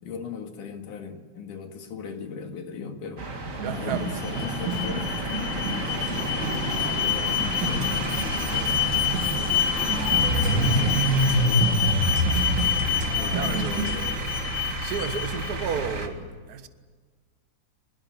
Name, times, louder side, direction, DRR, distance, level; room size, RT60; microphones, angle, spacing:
voice 1, 0.0-3.3 3.7-11.7 13.1-14.2, left 6 dB, 80° left, 3.6 m, -39 dB
sound 1, 3.2-16.1, right 1 dB, 30° right, 2.0 m, -28 dB
sound 2, 3.4-14.0, right 4 dB, 65° right, 3.6 m, -35 dB
voice 2, 3.6-4.6 13.3-13.7 14.8-16.7, right 7 dB, 50° right, 1.3 m, -32 dB
Alarm, 3.8-15.8, left 9 dB, 40° left, 2.3 m, -28 dB
23.0 x 21.0 x 9.5 m
omnidirectional pair, 3.6 m